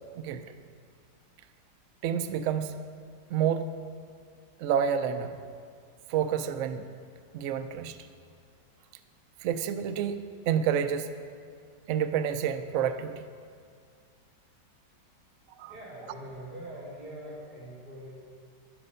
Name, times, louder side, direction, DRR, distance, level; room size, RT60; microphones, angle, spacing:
voice 1, 2.0-2.8 3.3-3.8 4.6-5.4 6.1-6.9 7.3-8.0 9.4-11.1 11.9-13.2 15.6-15.7, right 8 dB, 80° right, 9 dB, 0.7 m, -29 dB
voice 2, 15.7-18.1, right 1 dB, 60° right, -9 dB, 4.6 m, -43 dB
12.0 x 9.1 x 5.5 m, 2.2 s
omnidirectional pair, 1.9 m